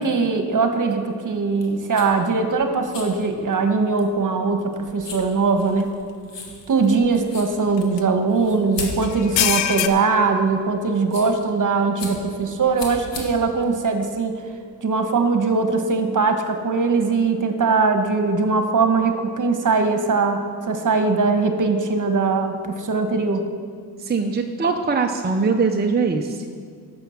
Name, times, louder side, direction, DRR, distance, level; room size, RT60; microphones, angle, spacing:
voice 1, 0.0-5.9 6.7-14.4 14.8-23.4, right 4 dB, 45° right, 6 dB, 1.4 m, -21 dB
sound 1, 1.5-14.6, left 3 dB, 70° left, 2.3 m, -39 dB
sound 2, 5.2-5.3 5.8-5.9 7.8-8.0 9.0-9.9, left 11 dB, 85° left, 0.8 m, -22 dB
voice 2, 24.0-26.4, right 4 dB, 20° right, 2 dB, 0.8 m, -21 dB
11.0 x 7.1 x 7.2 m, 2.2 s
cardioid pair, 75°, 44 cm